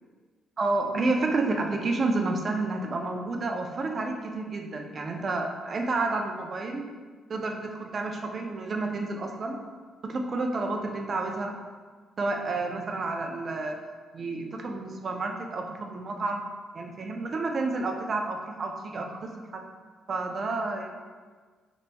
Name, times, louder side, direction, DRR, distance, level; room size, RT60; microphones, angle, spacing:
voice 1, 0.6-6.9 7.3-9.6 10.0-11.5 12.2-13.8 14.1-16.4 16.7-19.6 20.1-20.9, right 3 dB, 45° right, 3 dB, 0.4 m, -30 dB
3.9 x 3.3 x 2.2 m, 1.5 s
cardioid pair, 90°, 0 cm